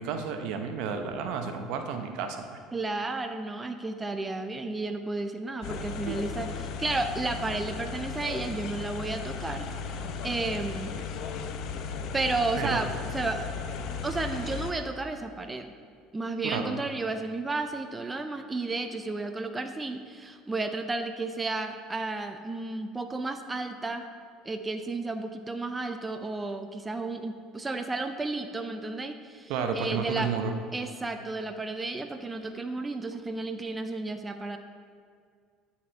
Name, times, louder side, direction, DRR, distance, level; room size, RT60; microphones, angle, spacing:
voice 1, 0.0-2.6 6.0-6.2 12.6-12.8 16.4-16.8 29.5-30.5, right 6 dB, 70° right, 6 dB, 0.7 m, -31 dB
voice 2, 2.7-10.0 10.2-11.0 12.1-13.5 13.9-15.7 16.1-24.0 24.4-30.3 30.7-34.6, right 3 dB, 20° right, 7 dB, 0.5 m, -32 dB
sound 1, 5.6-14.7, left 5 dB, 65° left, 0.6 m, -36 dB
10.0 x 4.2 x 4.4 m, 2.2 s
supercardioid pair, 85°, 0 cm